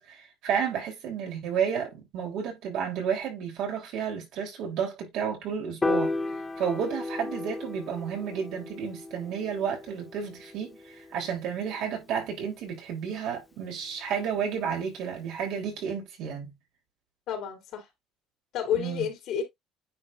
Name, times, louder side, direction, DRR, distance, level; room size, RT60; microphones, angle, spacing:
voice 1, 0.0-6.1 6.6-16.5 18.7-19.0, right 7 dB, 70° right, 3.5 m, -32 dB
Piano, 5.8-12.1, left 3 dB, 20° left, 0.7 m, -34 dB
voice 2, 17.3-17.9 18.5-19.4, left 9 dB, 65° left, 3.2 m, -30 dB
9.6 x 4.1 x 2.6 m
supercardioid pair, 105°, 0 cm